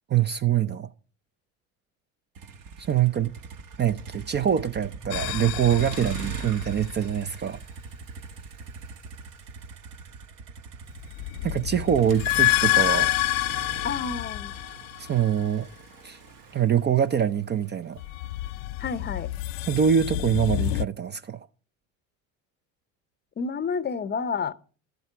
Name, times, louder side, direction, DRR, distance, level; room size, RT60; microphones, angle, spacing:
voice 1, 0.1-0.9 2.9-3.3 3.8-7.6 11.4-13.1 15.0-15.7 16.0-16.2 16.5-18.0 19.6-21.4, right 9 dB, 25° right, 0.5 m, -24 dB
Motor vehicle (road), 2.3-18.5, right 5 dB, 55° right, 1.3 m, -41 dB
sound 1, 5.1-7.1 11.0-15.5 18.0-20.8, left 20 dB, 70° left, 0.5 m, -28 dB
voice 2, 13.8-14.5 18.8-19.3 23.4-24.5, left 5 dB, 25° left, 0.7 m, -30 dB
12.5 x 7.8 x 6.0 m
hypercardioid pair, 85°, 41 cm